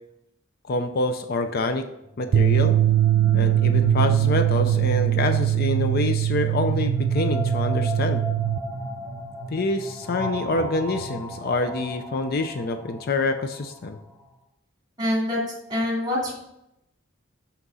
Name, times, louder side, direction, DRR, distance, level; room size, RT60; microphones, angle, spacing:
voice 1, 0.7-1.9 2.2-2.8 3.3-8.2 9.5-14.0, left 2 dB, 50° left, 7 dB, 0.5 m, -26 dB
sound 1, 2.0-13.9, right 1 dB, ahead, 2.6 m, -33 dB
sound 2, 2.3-8.6, right 12 dB, 75° right, 0.4 m, -21 dB
voice 2, 15.0-15.4 15.7-16.3, left 1 dB, 20° right, -2 dB, 2.5 m, -24 dB
6.2 x 5.9 x 5.5 m, 0.84 s
head